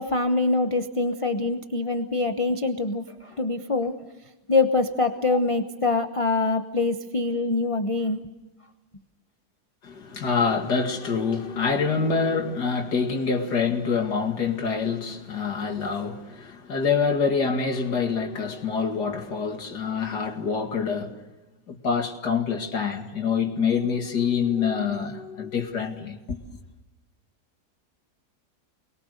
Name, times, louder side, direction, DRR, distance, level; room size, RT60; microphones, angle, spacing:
voice 1, 0.0-4.0 4.5-8.2, left 3 dB, 25° left, 0.9 m, -24 dB
voice 2, 9.8-21.2 21.7-26.6, left 5 dB, 75° left, 2.8 m, -26 dB
29.5 x 22.0 x 6.6 m
omnidirectional pair, 1.8 m